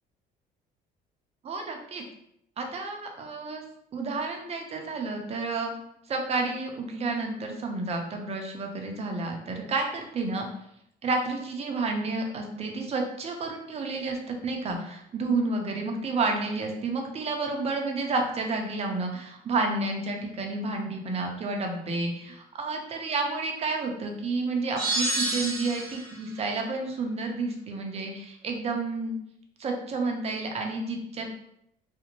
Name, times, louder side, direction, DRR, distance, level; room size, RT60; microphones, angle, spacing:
voice 1, 1.4-2.0 2.6-3.6 3.9-5.7 6.1-10.5 11.0-29.2 29.6-31.3, right 3 dB, 40° right, 3 dB, 0.5 m, -30 dB
sound 1, 24.8-26.1, right 2 dB, ahead, 1.1 m, -28 dB
2.5 x 2.1 x 2.9 m, 0.75 s
cardioid pair, 110°, 17 cm